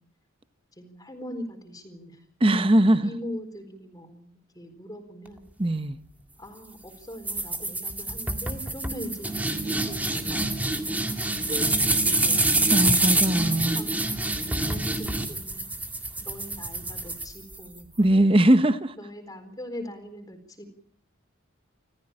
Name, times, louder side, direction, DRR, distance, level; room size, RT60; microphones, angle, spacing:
voice 1, 0.8-2.2 2.7-4.3 4.5-5.4 6.4-10.8 11.4-12.8 13.7-14.0 14.6-15.7 16.2-18.0 18.7-20.7, equal, 20° left, 4.2 m, -41 dB
voice 2, 2.4-3.1 5.6-6.0 12.7-13.8 18.0-18.9, right 1 dB, 25° right, 0.9 m, -20 dB
sound 1, 7.2-17.8, right 2 dB, 10° right, 2.0 m, -26 dB
27.0 x 14.5 x 8.9 m
head